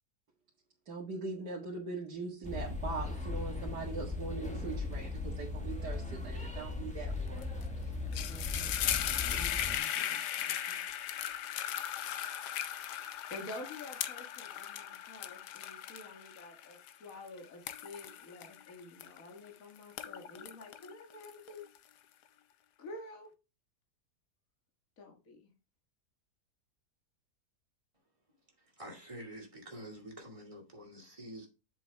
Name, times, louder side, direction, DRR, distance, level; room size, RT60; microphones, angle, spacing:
voice 1, 0.9-7.7, right 3 dB, 85° right, 2.4 m, -41 dB
sound 1, 2.4-9.8, left 3 dB, 5° left, 1.2 m, -38 dB
sound 2, 7.4-7.6 7.9-19.5 19.8-21.8, left 11 dB, 85° left, 1.3 m, -37 dB
voice 2, 8.3-10.8 13.3-21.7 22.8-23.3 25.0-25.5, left 1 dB, 55° left, 2.1 m, -49 dB
voice 3, 28.6-31.5, equal, 20° right, 2.6 m, -47 dB
7.6 x 6.9 x 3.5 m
omnidirectional pair, 1.7 m